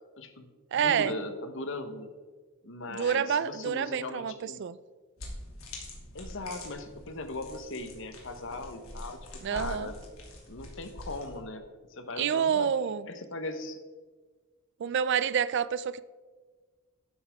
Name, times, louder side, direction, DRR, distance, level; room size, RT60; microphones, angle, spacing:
voice 1, 0.2-2.1 2.6-4.6 6.1-10.0 10.5-11.6 11.9-12.7 13.1-13.8, left 2 dB, 65° left, 1.0 m, -39 dB
voice 2, 0.7-1.1 2.9-4.8 9.4-9.9 12.2-13.1 14.8-16.0, right 7 dB, 55° right, 0.4 m, -28 dB
sound 1, 5.2-11.4, left 1 dB, 90° left, 2.6 m, -45 dB
12.0 x 8.2 x 3.5 m
head